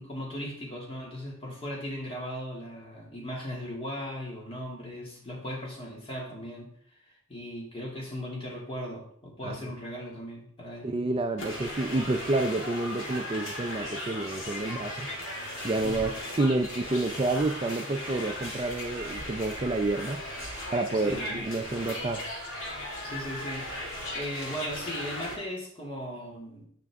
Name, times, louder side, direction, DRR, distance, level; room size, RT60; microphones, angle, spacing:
voice 1, 0.0-6.7 7.0-11.0 15.8-16.0 20.9-21.4 23.0-26.6, equal, 30° left, -3 dB, 2.5 m, -38 dB
voice 2, 10.8-20.2 20.7-22.3, right 2 dB, 30° right, 6 dB, 0.4 m, -29 dB
sound 1, 11.4-25.3, left 1 dB, 75° left, 2.5 m, -37 dB
9.3 x 6.0 x 3.6 m, 0.62 s
head